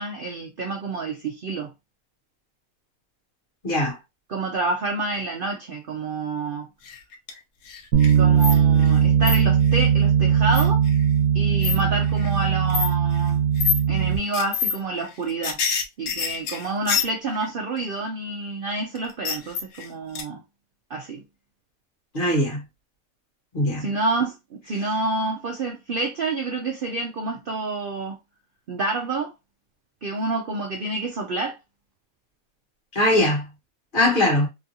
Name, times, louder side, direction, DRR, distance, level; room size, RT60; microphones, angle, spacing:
voice 1, 0.0-1.7 4.3-6.7 8.2-10.8 11.3-13.5 13.9-15.6 16.0-20.4 20.9-21.2 23.8-28.2 28.7-29.3 30.0-31.6, right 3 dB, 70° right, 0.5 m, -28 dB
voice 2, 3.6-4.0 22.1-22.6 23.5-23.8 32.9-33.5 33.9-34.5, left 1 dB, 40° left, 1.4 m, -21 dB
sound 1, 6.9-7.4 7.7-9.0 9.3-9.4 10.5-10.9 11.6-11.8 12.2-12.3 12.7-12.9 13.6-13.8 14.3-14.7 15.0-17.5 19.0-19.9 20.2-20.3, left 7 dB, 85° left, 1.2 m, -26 dB
Bass guitar, 7.9-14.2, right 8 dB, 85° right, 1.1 m, -19 dB
3.1 x 2.4 x 2.7 m
omnidirectional pair, 1.5 m